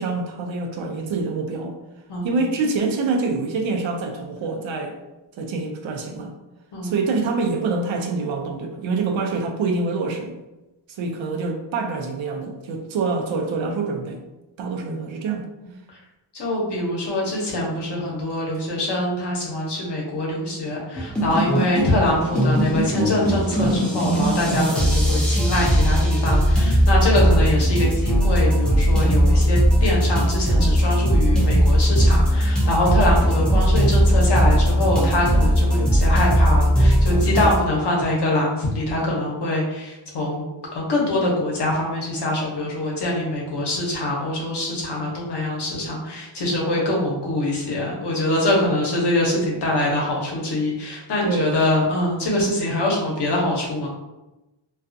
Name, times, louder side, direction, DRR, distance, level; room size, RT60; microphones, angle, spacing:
voice 1, 0.0-1.8 2.2-5.0 5.4-6.3 6.8-10.4 10.9-14.2 14.6-15.5 51.2-51.6, right 4 dB, 75° right, 3 dB, 0.5 m, -26 dB
voice 2, 16.3-40.4 40.7-53.9, left 1 dB, 60° left, -3 dB, 0.8 m, -24 dB
sound 1, 21.0-37.5, equal, ahead, 0.4 m, -18 dB
2.4 x 2.3 x 2.5 m, 1.0 s
wide cardioid pair, 145°, 47 cm